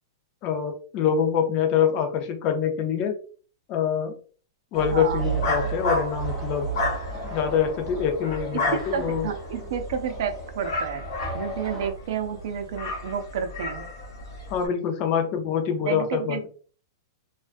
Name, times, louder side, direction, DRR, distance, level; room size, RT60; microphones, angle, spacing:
voice 1, 0.4-3.1 3.7-4.1 4.7-6.7 7.3-9.3 14.5-16.5, left 7 dB, 35° left, 4 dB, 0.5 m, -25 dB
sound 1, 4.7-14.7, equal, 65° left, 0.9 m, -31 dB
voice 2, 4.9-5.2 8.5-8.6 8.9-11.0 11.3-13.8 15.8-16.5, right 7 dB, 60° right, 7 dB, 0.5 m, -30 dB
sound 2, 5.2-11.9, equal, 5° right, 0.9 m, -38 dB
2.4 x 2.1 x 2.5 m, 0.41 s
hypercardioid pair, 150°, 2 cm